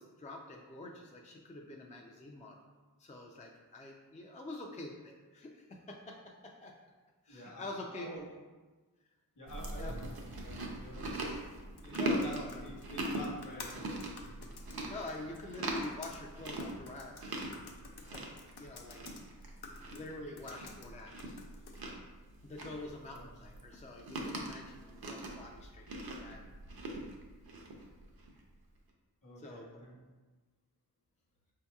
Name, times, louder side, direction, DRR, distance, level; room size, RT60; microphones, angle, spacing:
voice 1, 0.0-2.6 3.0-6.7 7.2-8.1 9.7-9.9 11.9-12.6 14.9-17.4 18.0-18.2 18.6-19.0 19.9-21.4 22.4-26.4 29.4-29.8, left 2 dB, 20° left, 0 dB, 0.3 m, -46 dB
voice 2, 7.3-7.7 8.0-8.2 9.3-11.2 11.8-14.3 23.1-23.3 29.2-30.0, equal, 55° left, -4 dB, 1.0 m, -48 dB
Chewing mastication, 9.5-28.4, right 1 dB, 65° right, 0.6 m, -41 dB
sound 1, 11.4-21.9, left 4 dB, 80° left, 0.5 m, -53 dB
4.4 x 2.8 x 2.3 m, 1.3 s
wide cardioid pair, 55°, 39 cm